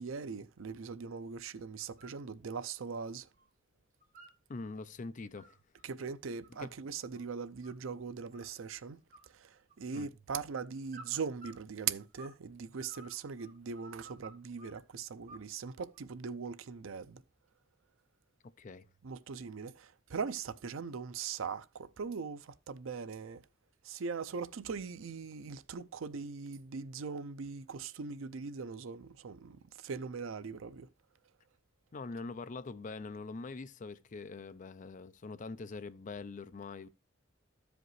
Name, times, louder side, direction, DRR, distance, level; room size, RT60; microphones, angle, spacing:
voice 1, 0.0-3.3 5.8-9.0 9.4-9.5 9.8-17.2 19.0-23.4 23.8-30.9, right 5 dB, 80° right, 0.5 m, -40 dB
sound 1, 1.8-2.2 2.5-3.5 3.8-4.7 5.1-7.9 8.3-8.8 9.1-10.1 10.9-12.4 12.7-14.8 15.3-16.0, right 2 dB, 40° right, 1.3 m, -56 dB
voice 2, 4.5-5.6 6.6-6.7 9.9-10.1 18.6-18.9 31.9-36.9, left 3 dB, 40° left, 0.4 m, -43 dB
13.5 x 5.1 x 3.1 m
head